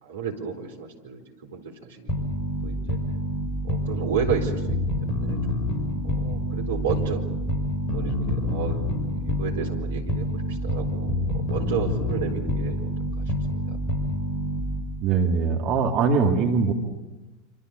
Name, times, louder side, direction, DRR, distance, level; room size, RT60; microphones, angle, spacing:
voice 1, 0.0-2.3 2.6-3.0 3.6-5.4 6.0-7.2 7.8-8.8 9.1-12.9 13.2-13.3 13.5-13.8, right 6 dB, 65° right, 3 dB, 4.1 m, -32 dB
sound 1, 2.1-15.0, equal, 25° left, 5.7 m, -27 dB
voice 2, 15.0-16.7, right 5 dB, 45° right, 2 dB, 3.0 m, -22 dB
27.0 x 26.5 x 7.0 m, 1.1 s
figure-of-eight pair, 85°, 0 cm